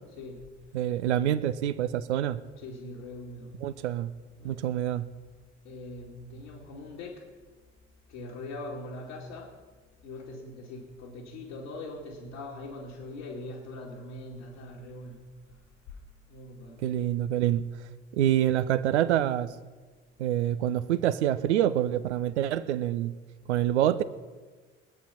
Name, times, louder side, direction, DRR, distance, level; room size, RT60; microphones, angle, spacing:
voice 1, 0.7-2.4 3.6-4.1 4.4-5.1 16.8-17.6 18.1-19.5 20.2-23.1 23.5-24.0, right 11 dB, 70° right, 14 dB, 0.8 m, -26 dB
voice 2, 2.6-3.5 4.4-4.6 5.6-7.2 8.1-9.5 10.0-15.2 16.3-16.8 18.5-18.9, left 2 dB, 65° left, -4 dB, 2.4 m, -42 dB
22.0 x 8.6 x 5.8 m, 1.4 s
figure-of-eight pair, 55°, 35 cm